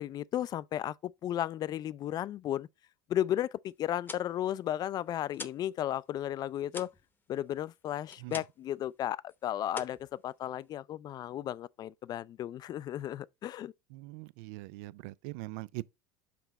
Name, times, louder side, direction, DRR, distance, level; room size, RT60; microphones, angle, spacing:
voice 1, 0.0-2.7 3.1-6.9 7.3-13.7, left 12 dB, 40° left, 0.4 m, -34 dB
sound 1, 4.0-5.7 6.0-8.7 9.0-9.4 9.7-10.8, left 4 dB, 20° left, 0.8 m, -46 dB
voice 2, 13.9-15.8, right 20 dB, 70° right, 0.4 m, -42 dB
5.9 x 4.9 x 4.1 m
hypercardioid pair, 90°, 10 cm